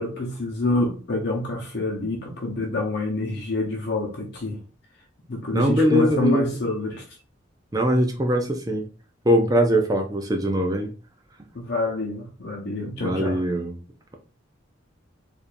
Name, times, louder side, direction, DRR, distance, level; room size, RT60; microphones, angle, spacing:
voice 1, 0.0-4.6 5.3-7.2 11.5-13.4, left 2 dB, 55° left, 0.8 m, -27 dB
voice 2, 5.5-6.5 7.7-8.8 9.3-10.9 13.0-13.8, equal, 20° right, 0.5 m, -21 dB
4.6 x 2.6 x 2.5 m
head